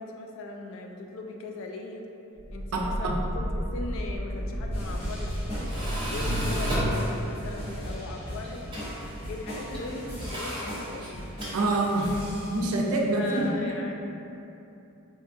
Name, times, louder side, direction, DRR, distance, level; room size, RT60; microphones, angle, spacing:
voice 1, 0.0-2.1 2.5-8.8 9.3-11.3 13.2-14.1, left 3 dB, 60° left, 2 dB, 0.3 m, -39 dB
sound 1, 2.3-8.4, equal, 5° left, 1.0 m, -35 dB
Tools, 4.3-12.3, equal, 20° right, 0.6 m, -34 dB
sound 2, 4.7-12.9 13.3-13.5, equal, 30° left, 0.7 m, -38 dB
voice 2, 11.5-12.1 12.5-13.5, right 2 dB, 75° right, -1 dB, 0.4 m, -25 dB
3.7 x 2.3 x 2.5 m, 2.8 s
head